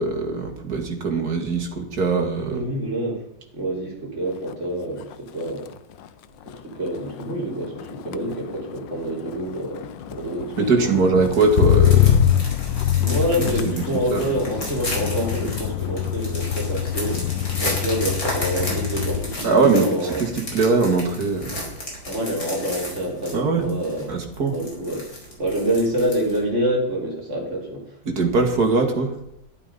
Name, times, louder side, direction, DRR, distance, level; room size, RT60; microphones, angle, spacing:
voice 1, 0.0-2.6 10.6-12.3 13.7-14.2 19.4-21.6 23.3-23.6 24.1-24.5 28.1-29.1, right 3 dB, 55° right, 4 dB, 2.6 m, -21 dB
voice 2, 2.5-3.2 3.5-5.7 6.5-11.1 13.0-20.2 22.0-24.1 24.5-25.1 25.4-28.0, right 1 dB, 40° right, -1 dB, 3.9 m, -27 dB
Motor vehicle (road), 4.3-4.7 5.0-19.4 19.8-20.3, left 11 dB, 85° left, 1.4 m, -25 dB
sound 1, 11.0-26.5, left 1 dB, 50° left, 4.9 m, -34 dB
12.0 x 11.5 x 5.4 m, 0.79 s
omnidirectional pair, 2.0 m